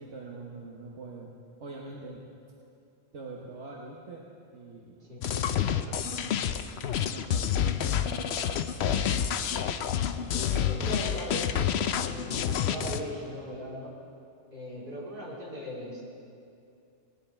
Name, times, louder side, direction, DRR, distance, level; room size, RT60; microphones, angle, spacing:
voice 1, 0.0-1.3 1.6-2.2 3.1-4.3 4.5-4.9 5.3-6.5 7.1-9.1, right 3 dB, 75° right, -2 dB, 1.5 m, -44 dB
sound 1, 5.2-13.0, left 9 dB, 70° left, 0.8 m, -28 dB
voice 2, 10.3-14.0 14.5-16.0, equal, 45° right, -7 dB, 3.5 m, -38 dB
18.5 x 10.5 x 4.4 m, 2.6 s
omnidirectional pair, 1.2 m